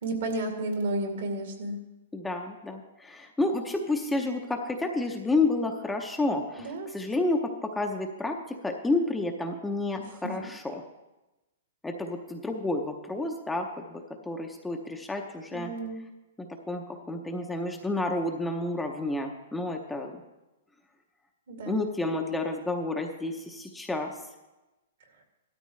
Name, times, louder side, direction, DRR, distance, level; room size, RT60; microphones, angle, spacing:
voice 1, 0.0-1.8 6.6-6.9 15.5-16.0 21.5-21.8, right 2 dB, 70° right, 2 dB, 2.5 m, -32 dB
voice 2, 2.1-10.8 11.8-15.7 16.4-20.2 21.7-24.1, left 2 dB, 5° left, 2 dB, 0.7 m, -30 dB
16.5 x 13.0 x 3.2 m, 1.0 s
hypercardioid pair, 160°, 0 cm